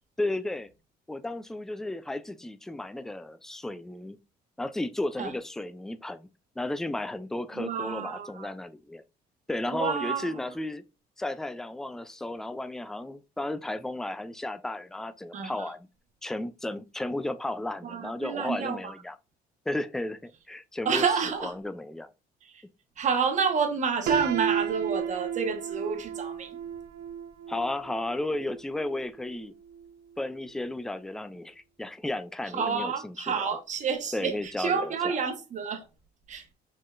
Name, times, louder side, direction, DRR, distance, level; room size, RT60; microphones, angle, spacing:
voice 1, 0.2-0.7 1.1-4.2 4.6-6.3 6.6-9.0 9.5-10.8 11.2-15.8 16.2-19.2 19.7-21.0 21.4-22.1 27.5-29.5 30.2-33.6 34.1-35.2, left 1 dB, 5° left, 0.3 m, -34 dB
voice 2, 7.5-8.5 9.7-10.4 15.3-15.7 17.8-18.9 20.8-21.5 22.4-22.6 23.0-26.6 32.5-35.9 36.3-36.4, right 6 dB, 45° right, 1.1 m, -29 dB
Piano, 24.1-29.9, right 8 dB, 75° right, 1.0 m, -34 dB
5.3 x 3.7 x 2.4 m
cardioid pair, 110°, 17 cm